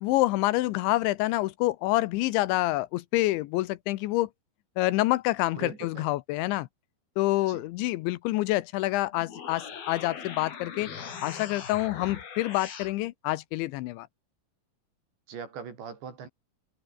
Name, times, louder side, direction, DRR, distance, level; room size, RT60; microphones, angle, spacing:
voice 1, 0.0-4.3 4.8-6.7 7.2-10.9 11.2-14.1, left 18 dB, 85° left, 3.1 m, -27 dB
voice 2, 5.5-6.1 7.5-7.7 15.3-16.3, right 6 dB, 65° right, 7.0 m, -41 dB
sound 1, 9.1-12.9, left 6 dB, 55° left, 5.5 m, -41 dB
open air
omnidirectional pair, 5.4 m